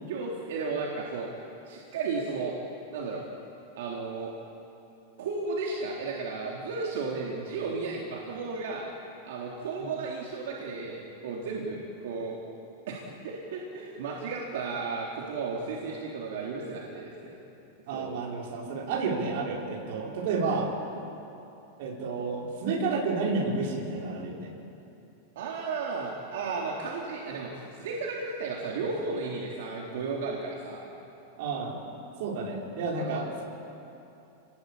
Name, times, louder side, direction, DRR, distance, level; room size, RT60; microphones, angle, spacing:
voice 1, 0.1-1.3 1.7-2.6 2.9-3.2 3.8-4.3 5.2-8.9 9.2-12.4 12.9-17.3 17.9-18.1 25.4-30.8 33.0-33.3, right 4 dB, 70° right, -3 dB, 3.9 m, -34 dB
voice 2, 17.9-20.7 21.8-24.5 31.4-31.8 32.2-33.4, right 4 dB, 55° right, -2 dB, 5.8 m, -31 dB
30.0 x 21.0 x 8.8 m, 2.8 s
supercardioid pair, 165°, 0 cm